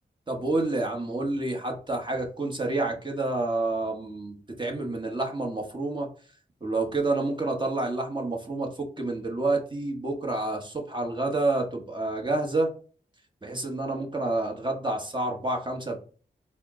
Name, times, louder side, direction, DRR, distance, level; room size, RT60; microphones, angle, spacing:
voice 1, 0.3-6.1 6.6-12.7 13.4-16.0, right 2 dB, 25° right, 1 dB, 1.1 m, -29 dB
4.1 x 2.1 x 3.7 m, 0.40 s
cardioid pair, 65°, 18 cm